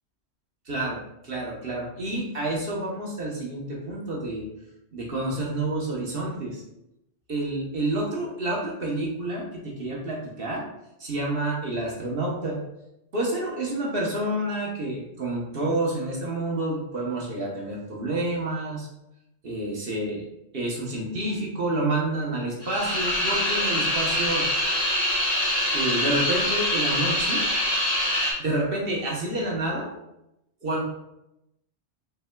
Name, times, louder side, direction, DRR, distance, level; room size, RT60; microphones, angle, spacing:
voice 1, 0.7-1.0 1.2-4.5 4.9-6.6 7.3-9.4 9.8-10.7 11.0-12.6 13.1-18.9 19.4-24.4 25.7-27.4 28.4-29.9 30.6-30.8, right 2 dB, 55° right, -2 dB, 1.2 m, -29 dB
sound 1, 22.6-28.3, left 1 dB, 20° left, 1.8 m, -24 dB
5.6 x 4.1 x 2.2 m, 0.85 s
omnidirectional pair, 1.2 m